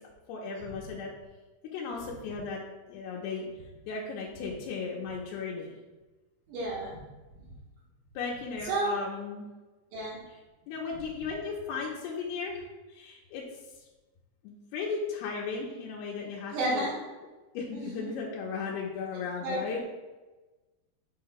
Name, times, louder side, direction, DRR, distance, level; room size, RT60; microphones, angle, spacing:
voice 1, 0.3-1.1 1.7-2.6 2.9-3.5 3.9-5.8 8.2-9.5 10.7-12.6 12.9-13.4 14.4-16.9 17.5-19.8, left 5 dB, 80° left, -3 dB, 2.4 m, -36 dB
voice 2, 6.5-7.0 8.6-9.0 9.9-10.2 16.5-16.9 17.7-18.1 19.4-19.6, right 2 dB, 80° right, -5 dB, 3.4 m, -31 dB
10.5 x 5.6 x 2.2 m, 1.2 s
omnidirectional pair, 5.4 m